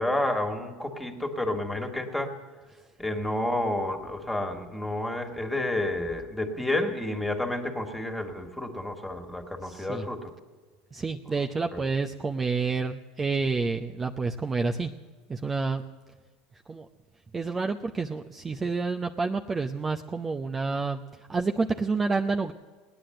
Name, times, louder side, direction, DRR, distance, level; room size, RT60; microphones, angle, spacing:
voice 1, 0.0-2.3 3.0-10.3 11.7-11.8, left 1 dB, 5° left, 4 dB, 2.1 m, -30 dB
voice 2, 9.6-10.1 10.9-14.9 15.3-15.8 16.7-16.9 17.3-21.0 21.3-22.5, right 4 dB, 20° right, 3 dB, 0.7 m, -29 dB
18.0 x 10.0 x 7.8 m, 1.4 s
supercardioid pair, 110°, 0 cm